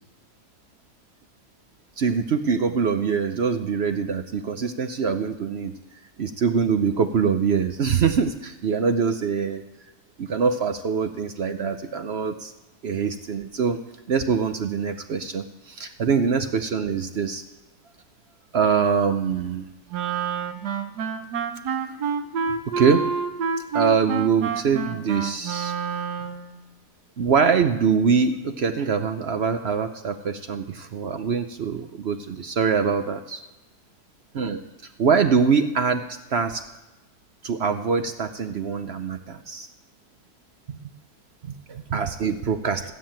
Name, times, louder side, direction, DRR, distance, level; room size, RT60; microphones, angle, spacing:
voice 1, 2.0-5.7 6.2-9.6 10.2-12.5 12.8-13.8 14.1-17.4 18.5-19.6 22.8-23.1 23.7-25.7 27.2-33.4 34.3-34.6 35.0-36.0 36.3-36.6 37.4-39.7 40.7-40.8 41.4-42.9, right 6 dB, 55° right, 8 dB, 0.8 m, -23 dB
Wind instrument woodwind instrument, 19.9-26.5, right 6 dB, 85° right, 1.5 m, -28 dB
15.0 x 7.6 x 8.7 m, 1.1 s
omnidirectional pair, 1.7 m